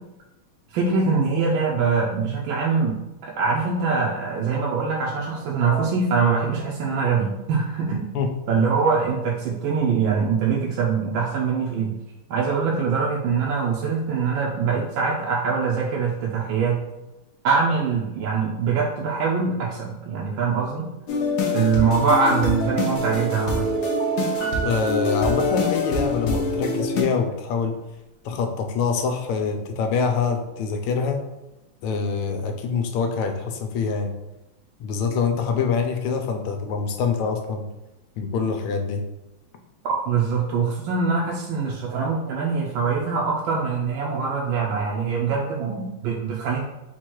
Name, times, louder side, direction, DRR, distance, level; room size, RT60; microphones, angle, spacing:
voice 1, 0.7-8.1 8.5-11.9 12.3-16.8 17.4-20.9 21.5-23.7 39.8-46.6, right 5 dB, 75° right, -3 dB, 1.2 m, -23 dB
sound 1, 21.1-27.0, left 2 dB, 65° left, 1.1 m, -25 dB
Piano, 24.4-26.2 26.5-26.6, right 4 dB, 15° left, 0.9 m, -35 dB
voice 2, 24.6-27.8 28.2-31.2 31.8-34.1 34.8-37.7 38.2-39.0, left 5 dB, 85° left, 5 dB, 1.5 m, -25 dB
4.4 x 2.3 x 4.5 m, 0.97 s
omnidirectional pair, 2.4 m